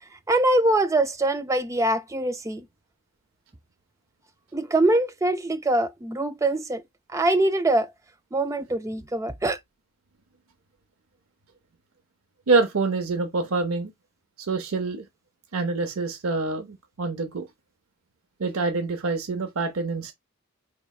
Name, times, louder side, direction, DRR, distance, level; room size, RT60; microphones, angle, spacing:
voice 1, 0.3-2.7 4.5-6.8 7.1-7.9 8.3-9.6, right 1 dB, 15° right, 0.4 m, -23 dB
voice 2, 12.5-13.9 14.4-15.0 15.5-17.5 18.4-20.1, right 3 dB, 90° right, 0.7 m, -26 dB
4.6 x 3.0 x 2.3 m
head